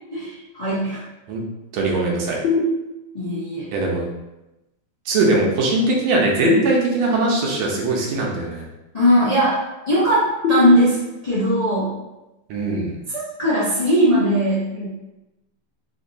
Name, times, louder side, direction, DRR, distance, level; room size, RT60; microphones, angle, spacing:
voice 1, 0.1-1.0 3.1-3.7 8.9-11.0 11.2-11.9 13.1-14.9, equal, 45° left, -11 dB, 0.5 m, -19 dB
voice 2, 1.7-2.4 3.7-4.1 5.1-8.6 12.5-12.9, right 2 dB, 90° right, -1 dB, 1.7 m, -21 dB
sound 1, 2.4-3.4 6.4-7.4 10.4-11.4, left 2 dB, 65° left, 1.4 m, -24 dB
3.9 x 2.9 x 2.6 m, 0.96 s
omnidirectional pair, 2.3 m